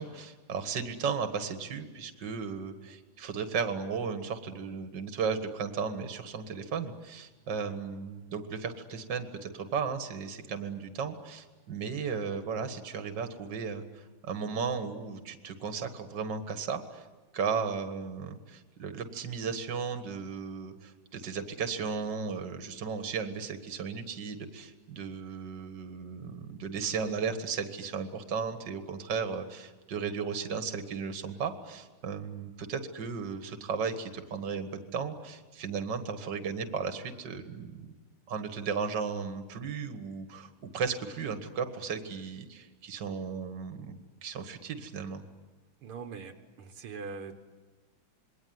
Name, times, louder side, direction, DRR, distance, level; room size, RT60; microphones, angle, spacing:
voice 1, 0.0-17.1 17.3-37.9 38.3-45.2, right 5 dB, 55° right, 8 dB, 2.3 m, -35 dB
voice 2, 45.8-47.3, right 5 dB, 80° right, 6 dB, 2.4 m, -42 dB
27.0 x 22.0 x 9.5 m, 1.3 s
omnidirectional pair, 2.3 m